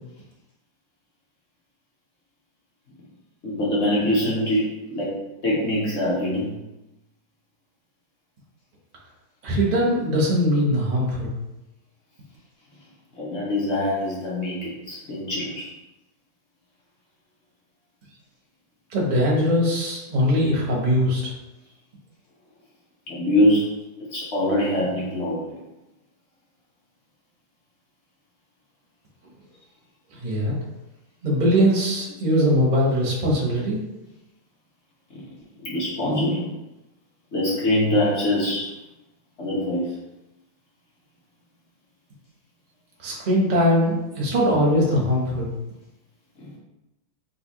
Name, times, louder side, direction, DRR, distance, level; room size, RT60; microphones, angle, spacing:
voice 1, 3.4-5.1 5.4-6.5 13.2-15.7 23.1-23.7 24.1-25.6 35.1-35.2 35.6-36.5 37.3-38.7 39.4-39.8 46.4-46.5, left 1 dB, 45° left, -6 dB, 1.0 m, -23 dB
voice 2, 9.4-11.3 18.9-21.3 30.2-30.5 31.2-33.8 43.0-45.5, equal, 45° right, -4 dB, 0.6 m, -21 dB
4.0 x 2.4 x 2.8 m, 0.95 s
omnidirectional pair, 2.1 m